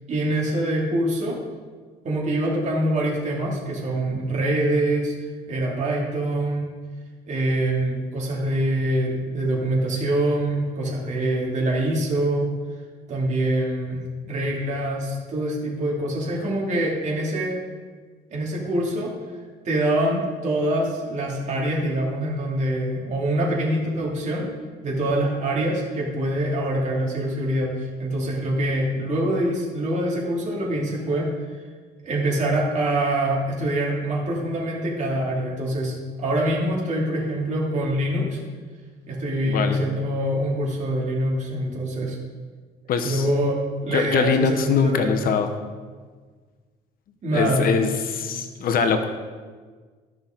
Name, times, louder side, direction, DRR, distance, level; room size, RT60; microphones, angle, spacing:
voice 1, 0.1-1.4 2.0-5.1 5.5-6.7 7.3-12.5 13.1-17.6 18.3-19.1 19.6-24.5 24.8-31.6 32.0-38.4 39.1-42.2 43.0-45.2 47.2-47.7, right 1 dB, 45° right, -3 dB, 2.6 m, -24 dB
voice 2, 39.4-39.8 42.9-43.3 43.9-45.5 47.3-49.0, left 5 dB, 60° left, 7 dB, 0.9 m, -22 dB
13.5 x 6.0 x 3.8 m, 1.5 s
cardioid pair, 110°, 17 cm